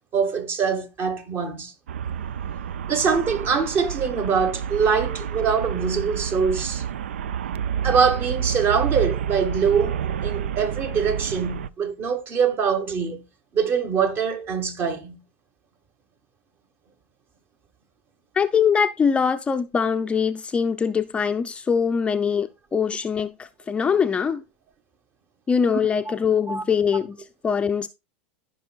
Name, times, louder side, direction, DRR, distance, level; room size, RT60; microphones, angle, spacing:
voice 1, 0.1-1.7 2.9-6.8 7.8-13.2 13.5-15.2 22.7-22.9 26.5-26.6, right 6 dB, 35° right, 1.3 m, -23 dB
Traffic noise roadway noise, 1.9-11.7, right 8 dB, 85° right, 0.4 m, -29 dB
voice 2, 18.4-24.4 25.5-27.2 27.4-27.9, left 6 dB, 20° left, 0.5 m, -22 dB
14.5 x 5.4 x 2.4 m
hypercardioid pair, 115°, 6 cm